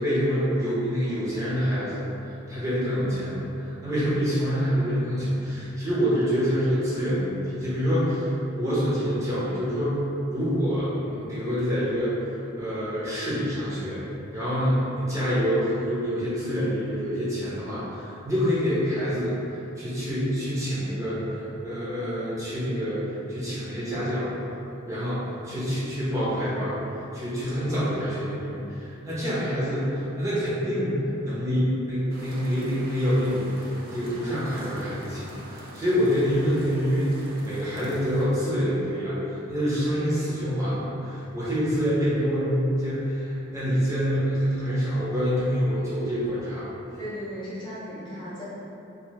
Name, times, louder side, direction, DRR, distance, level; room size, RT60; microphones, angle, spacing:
voice 1, 0.0-2.0 2.5-10.0 10.3-12.2 12.6-14.0 14.3-19.4 19.8-24.3 24.9-26.8 27.1-46.7, equal, 15° right, -11 dB, 0.8 m, -26 dB
sound 1, 32.1-38.2, right 1 dB, 45° right, 0.4 m, -44 dB
voice 2, 47.0-48.4, equal, 20° left, -11 dB, 0.6 m, -36 dB
2.8 x 2.7 x 3.1 m, 2.9 s
head